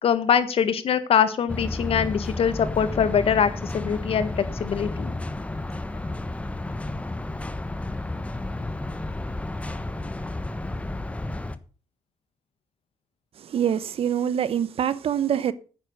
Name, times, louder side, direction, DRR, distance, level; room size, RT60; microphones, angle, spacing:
voice 1, 0.0-5.1, left 7 dB, 60° left, 1.7 m, -23 dB
sound 1, 1.5-11.6, left 2 dB, 10° left, 1.2 m, -32 dB
voice 2, 13.4-15.5, right 9 dB, 60° right, 1.0 m, -25 dB
9.9 x 9.0 x 6.5 m
cardioid pair, 75°, 11 cm